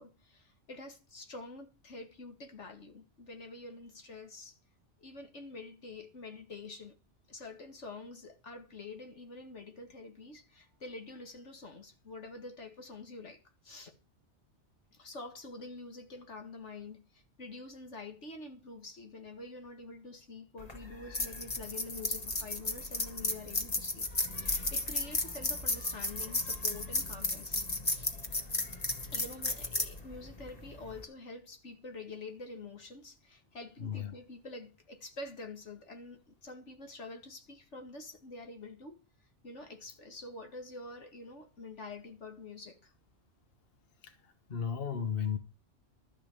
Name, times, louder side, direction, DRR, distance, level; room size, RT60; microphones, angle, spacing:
voice 1, 0.0-4.6 5.0-7.0 7.3-13.9 14.9-24.1 24.4-28.1 29.0-39.0 39.4-42.9, left 3 dB, 80° left, 2.3 m, -47 dB
sound 1, 20.6-31.0, left 2 dB, 35° left, 1.9 m, -34 dB
voice 2, 33.8-34.1 44.0-44.1 44.5-45.4, left 7 dB, 55° left, 1.4 m, -34 dB
13.0 x 5.7 x 8.5 m
omnidirectional pair, 1.2 m